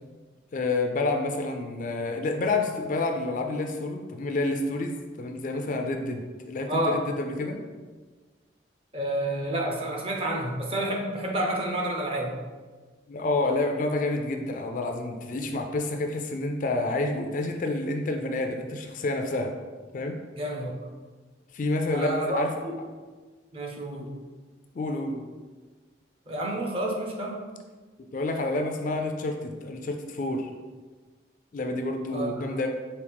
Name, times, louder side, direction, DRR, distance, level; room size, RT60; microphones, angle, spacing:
voice 1, 0.5-7.6 13.1-19.5 19.9-20.2 21.5-22.5 24.0-24.1 24.7-25.3 28.0-30.5 31.5-32.7, left 2 dB, 40° left, 4 dB, 0.3 m, -29 dB
voice 2, 6.7-7.0 8.9-12.4 20.4-20.7 21.9-22.7 23.5-24.1 26.3-27.4 32.1-32.6, right 1 dB, 30° right, 0 dB, 0.6 m, -29 dB
4.8 x 2.8 x 3.4 m, 1.4 s
head